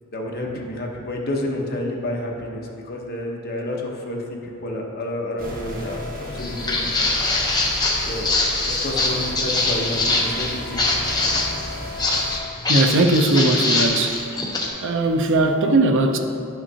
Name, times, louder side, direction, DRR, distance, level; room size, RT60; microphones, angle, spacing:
voice 1, 0.1-7.1 8.1-8.3 8.6-10.8, left 1 dB, 45° left, -1 dB, 1.0 m, -29 dB
sound 1, 5.4-12.4, equal, 40° right, 1.1 m, -34 dB
Walk footsteps, 6.4-14.7, left 2 dB, 20° left, 0.9 m, -23 dB
voice 2, 12.7-14.2 14.8-16.2, right 2 dB, 60° right, 5 dB, 0.5 m, -19 dB
10.5 x 5.8 x 2.8 m, 2.5 s
head